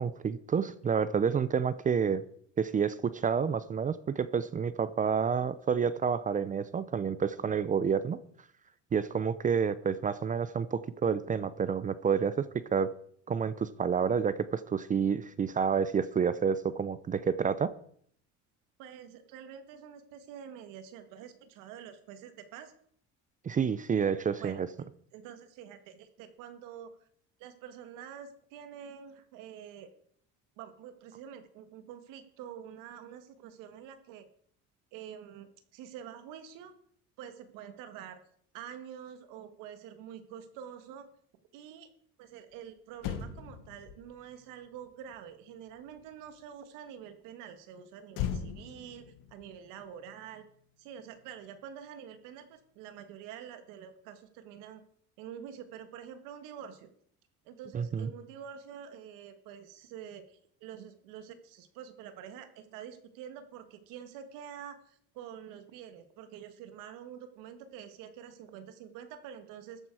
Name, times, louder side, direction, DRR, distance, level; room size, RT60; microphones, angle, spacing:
voice 1, 0.0-2.2 2.6-8.2 8.9-12.9 13.3-17.7 23.4-24.7 57.7-58.1, right 6 dB, 25° right, 16 dB, 0.6 m, -29 dB
voice 2, 18.8-22.7 24.4-26.9 27.4-29.9 30.6-34.3 34.9-36.7 37.2-38.2 38.5-41.1 41.5-41.9 42.2-50.4 50.8-54.8 55.2-56.9 57.5-69.8, right 9 dB, 90° right, 10 dB, 1.8 m, -47 dB
Motor vehicle (road), 42.5-42.6 42.9-46.5 48.1-50.7 51.0-51.2, left 8 dB, 85° left, 1.6 m, -41 dB
14.0 x 10.0 x 4.8 m, 0.62 s
cardioid pair, 130°, 31 cm